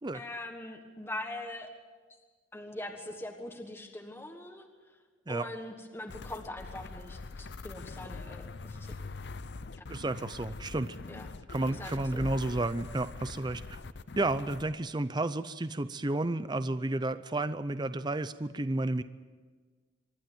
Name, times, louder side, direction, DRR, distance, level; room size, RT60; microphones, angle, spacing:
voice 1, 0.1-1.7 2.5-4.7 5.3-8.9 11.1-11.3 11.7-12.3, left 1 dB, 10° left, 3 dB, 1.4 m, -42 dB
sound 1, 6.1-14.7, left 3 dB, 60° left, 0.6 m, -43 dB
voice 2, 9.9-11.0 11.5-13.8 14.2-19.0, right 2 dB, 20° right, 13 dB, 0.5 m, -32 dB
24.5 x 12.0 x 9.2 m, 1.4 s
head